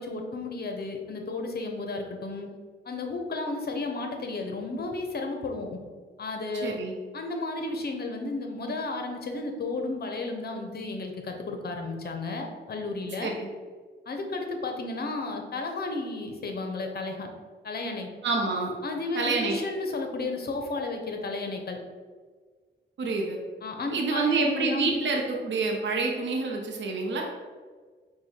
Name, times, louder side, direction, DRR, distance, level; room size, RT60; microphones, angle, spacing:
voice 1, 0.0-2.5 2.9-5.8 6.2-6.7 7.1-13.3 14.1-17.3 17.6-18.1 18.8-21.8 23.6-25.1, left 3 dB, 55° left, 3 dB, 0.7 m, -33 dB
voice 2, 6.6-6.9 13.2-13.5 18.2-18.7 19.1-19.6 23.0-23.4 23.9-27.2, right 3 dB, 65° right, 0 dB, 0.7 m, -27 dB
4.8 x 2.2 x 4.3 m, 1.5 s
cardioid pair, 70°, 20 cm